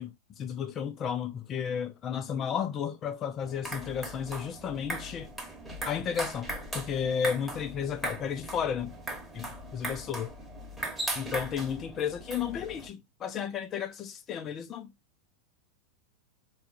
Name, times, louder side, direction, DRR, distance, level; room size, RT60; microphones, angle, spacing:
voice 1, 0.0-5.3 5.9-9.0 9.3-10.3 11.2-14.9, left 7 dB, 30° left, 0.5 m, -33 dB
sound 1, 3.4-12.9, right 1 dB, 5° right, 1.1 m, -39 dB
4.1 x 2.4 x 2.6 m
figure-of-eight pair, 90°, 0 cm